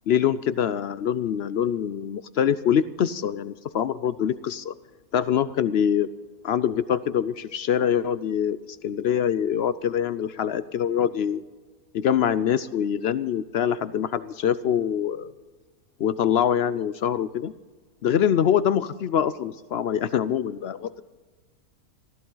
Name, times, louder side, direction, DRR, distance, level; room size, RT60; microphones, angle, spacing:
voice 1, 0.1-4.7 5.1-6.1 6.4-11.4 11.9-15.3 16.0-17.5 18.0-21.0, left 9 dB, 65° left, 15 dB, 0.6 m, -24 dB
20.0 x 15.0 x 3.9 m, 1.3 s
omnidirectional pair, 1.6 m